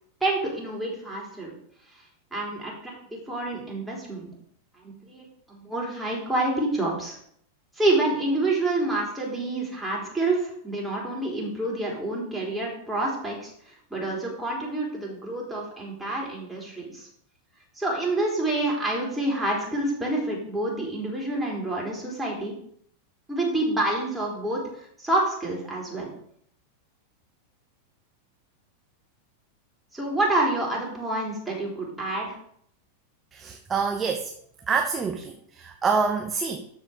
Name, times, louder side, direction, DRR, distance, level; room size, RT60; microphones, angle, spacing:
voice 1, 0.2-1.5 2.3-4.3 4.8-7.2 7.8-17.1 17.8-22.5 23.3-26.1 29.9-32.4, right 2 dB, 5° right, -3 dB, 3.7 m, -28 dB
voice 2, 33.3-34.3 34.7-36.7, right 5 dB, 20° right, 5 dB, 0.9 m, -26 dB
12.5 x 4.6 x 5.1 m, 0.67 s
figure-of-eight pair, 90°, 0 cm